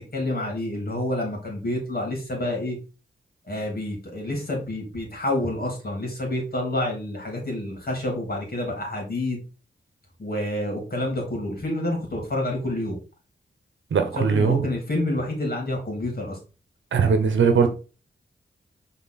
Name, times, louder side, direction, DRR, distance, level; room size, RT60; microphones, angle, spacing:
voice 1, 0.1-2.8 3.5-9.4 10.2-13.0 14.2-16.4, left 1 dB, 55° left, 3.3 m, -28 dB
voice 2, 13.9-14.6 16.9-17.7, right 6 dB, 90° right, 1.1 m, -20 dB
5.8 x 3.9 x 4.2 m
cardioid pair, 60°, 19 cm